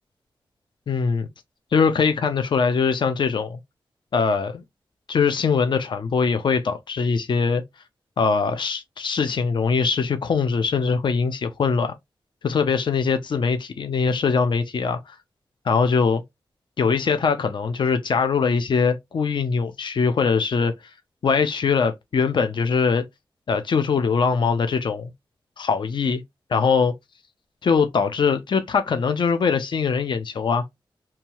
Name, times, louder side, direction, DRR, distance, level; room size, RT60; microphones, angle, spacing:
voice 1, 0.9-1.3 1.7-3.6 4.1-4.6 5.1-7.6 8.2-11.9 12.4-15.1 15.7-16.2 16.8-20.7 21.2-23.0 23.5-25.1 25.6-26.2 26.5-26.9 27.6-30.6, left 5 dB, 55° left, 0.5 m, -22 dB
2.7 x 2.3 x 2.8 m
wide cardioid pair, 95°, 9 cm